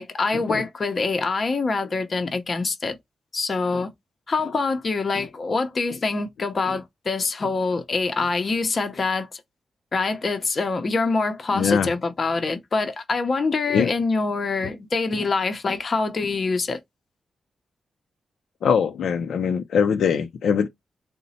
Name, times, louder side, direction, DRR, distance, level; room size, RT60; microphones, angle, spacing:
voice 1, 0.0-3.0 3.3-3.9 4.3-9.4 9.9-16.8, left 3 dB, 35° left, 0.6 m, -25 dB
voice 2, 11.5-11.9 13.7-13.9 18.6-20.7, left 7 dB, 75° left, 0.4 m, -22 dB
3.9 x 2.1 x 4.1 m
wide cardioid pair, 175°, 0 cm